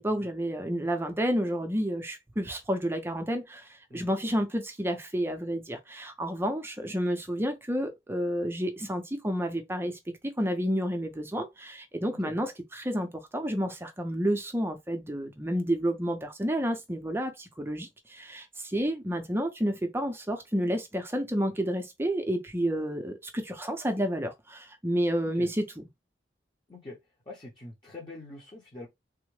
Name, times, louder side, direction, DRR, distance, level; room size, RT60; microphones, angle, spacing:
voice 1, 0.0-25.7, equal, 10° right, 0.5 m, -30 dB
voice 2, 27.3-28.9, left 2 dB, 25° left, 0.7 m, -44 dB
3.5 x 2.0 x 3.1 m
head